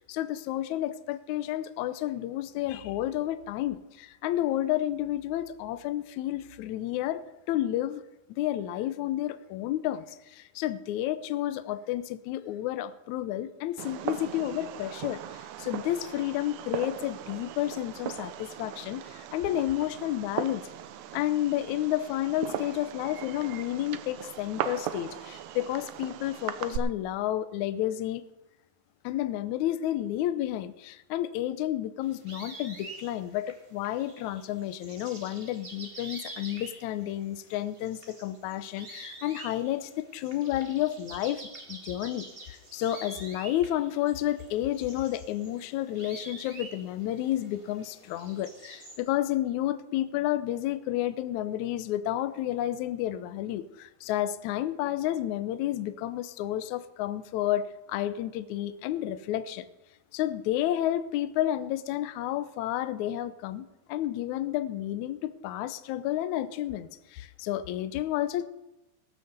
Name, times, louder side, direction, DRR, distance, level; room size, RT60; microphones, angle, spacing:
voice 1, 0.0-7.2 7.5-8.0 8.4-20.6 21.1-28.2 29.0-59.6 60.1-68.5, left 13 dB, 80° left, 1.7 m, -31 dB
Fireworks, 13.8-26.8, right 11 dB, 90° right, 1.6 m, -38 dB
sound 1, 32.0-49.0, right 2 dB, 25° right, 1.3 m, -47 dB
19.0 x 6.5 x 6.8 m
omnidirectional pair, 4.2 m